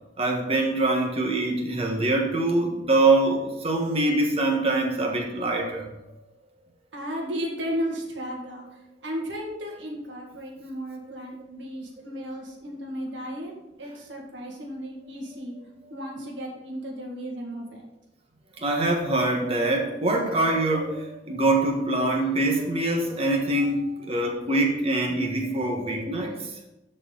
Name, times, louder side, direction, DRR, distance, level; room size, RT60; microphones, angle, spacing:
voice 1, 0.2-5.9 12.2-12.3 18.6-26.7, right 2 dB, 30° right, 1 dB, 1.3 m, -24 dB
voice 2, 6.9-8.7 9.0-13.5 13.8-15.6 15.9-17.9, equal, 75° right, -1 dB, 1.9 m, -34 dB
12.0 x 4.5 x 3.9 m, 0.95 s
head